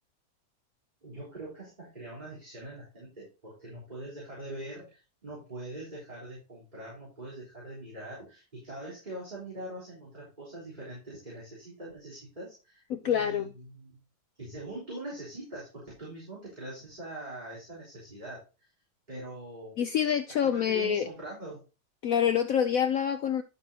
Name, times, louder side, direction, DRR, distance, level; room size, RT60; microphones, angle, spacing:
voice 1, 1.0-14.0 14.4-18.7 19.1-19.8 20.3-21.6, right 1 dB, 20° right, 3.8 m, -43 dB
voice 2, 12.9-13.5 19.8-21.1 22.0-23.4, left 8 dB, 80° left, 0.7 m, -26 dB
11.0 x 6.9 x 2.8 m
omnidirectional pair, 2.1 m